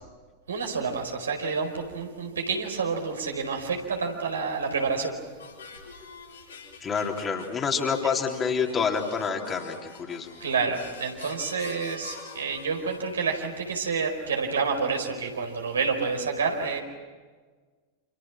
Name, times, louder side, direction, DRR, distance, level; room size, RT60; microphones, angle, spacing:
voice 1, 0.5-5.1 10.4-16.8, right 5 dB, 70° right, 3 dB, 4.9 m, -28 dB
sound 1, 5.4-13.3, left 5 dB, 70° left, 6.3 m, -45 dB
voice 2, 6.8-10.3, left 6 dB, 25° left, 2 dB, 3.7 m, -28 dB
29.5 x 28.0 x 6.1 m, 1.4 s
figure-of-eight pair, 90°, 0 cm